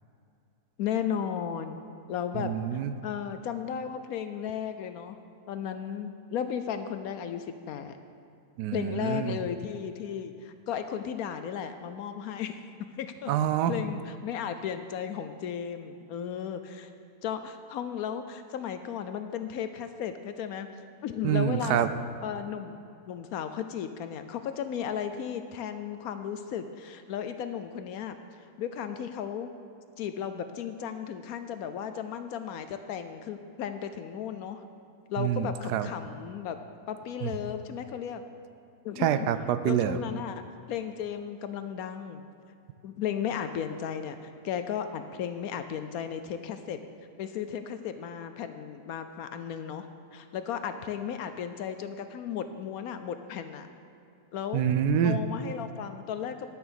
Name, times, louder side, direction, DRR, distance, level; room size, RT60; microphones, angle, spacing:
voice 1, 0.8-1.8 2.1-5.2 5.5-8.0 8.7-12.6 13.0-13.3 13.7-16.9 17.2-20.7 21.0-21.8 22.2-28.2 28.6-29.5 30.0-34.6 35.1-36.6 36.9-38.2 38.8-39.1 39.6-40.4 40.7-42.2 42.8-46.8 47.2-53.7 54.3-54.7 55.0-56.5, left 8 dB, 70° left, 9 dB, 1.0 m, -35 dB
voice 2, 2.3-2.9 8.6-9.4 13.3-13.7 21.2-21.9 35.2-35.9 37.2-37.3 39.0-40.0 54.5-55.2, right 9 dB, 85° right, 11 dB, 1.2 m, -26 dB
11.0 x 6.0 x 6.9 m, 2.6 s
omnidirectional pair, 1.7 m